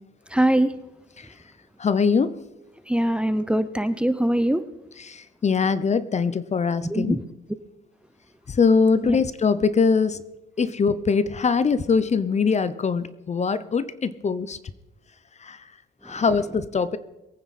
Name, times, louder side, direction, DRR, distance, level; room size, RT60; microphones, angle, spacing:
voice 1, 0.3-0.7 2.9-4.6 6.9-7.2 9.0-9.2, right 1 dB, 5° right, 13 dB, 0.7 m, -22 dB
voice 2, 1.8-2.4 5.0-7.2 8.5-10.2 10.6-14.6 15.4-15.6 16.0-17.0, left 5 dB, 35° left, 15 dB, 0.8 m, -22 dB
22.0 x 9.3 x 4.3 m, 0.95 s
cardioid pair, 90°, 20 cm